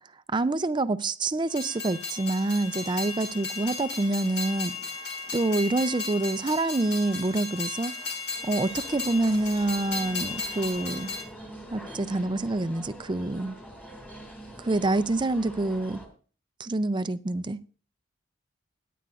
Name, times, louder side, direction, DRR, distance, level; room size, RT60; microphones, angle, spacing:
voice 1, 0.3-4.7 5.3-7.9 8.4-11.1 11.7-13.6 14.6-16.0 16.6-17.6, right 2 dB, 25° right, 0.5 m, -27 dB
Train, 1.5-11.2, left 4 dB, 55° left, 2.4 m, -35 dB
sound 1, 8.3-16.1, equal, 10° left, 2.3 m, -44 dB
17.0 x 10.0 x 2.5 m
head